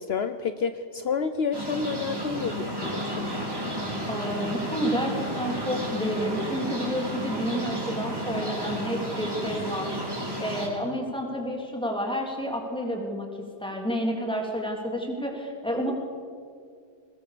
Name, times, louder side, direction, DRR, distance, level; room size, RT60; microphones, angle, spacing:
voice 1, 0.0-3.3, left 5 dB, 65° left, 9 dB, 1.0 m, -29 dB
sound 1, 1.5-10.7, equal, 20° right, 4.1 m, -32 dB
voice 2, 4.1-10.0 10.4-13.3 13.6-15.9, equal, 5° left, 0 dB, 3.4 m, -30 dB
22.5 x 20.0 x 6.8 m, 2.2 s
omnidirectional pair, 1.2 m